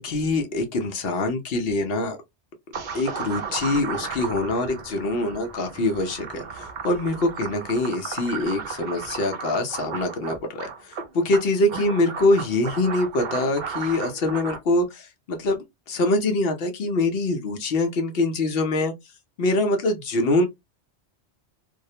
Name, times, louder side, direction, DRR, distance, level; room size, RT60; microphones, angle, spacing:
voice 1, 0.0-2.2 2.9-15.6 15.9-18.9 19.4-20.5, left 2 dB, 65° left, 0.8 m, -24 dB
sound 1, 2.7-14.6, right 6 dB, 55° right, 0.6 m, -35 dB
2.4 x 2.0 x 2.7 m
omnidirectional pair, 1.1 m